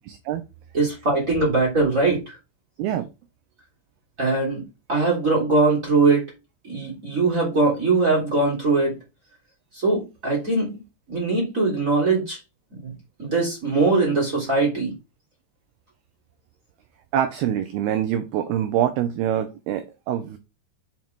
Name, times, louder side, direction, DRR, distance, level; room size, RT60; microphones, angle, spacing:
voice 1, 0.1-0.4 2.8-3.1 17.1-20.4, right 10 dB, 80° right, 10 dB, 2.3 m, -25 dB
voice 2, 0.7-2.4 4.2-4.6 4.9-6.3 6.6-8.9 9.7-10.7 11.1-12.4 12.7-12.9 13.2-14.9, right 3 dB, 20° right, -3 dB, 3.2 m, -21 dB
7.3 x 5.8 x 4.4 m, 0.26 s
omnidirectional pair, 5.2 m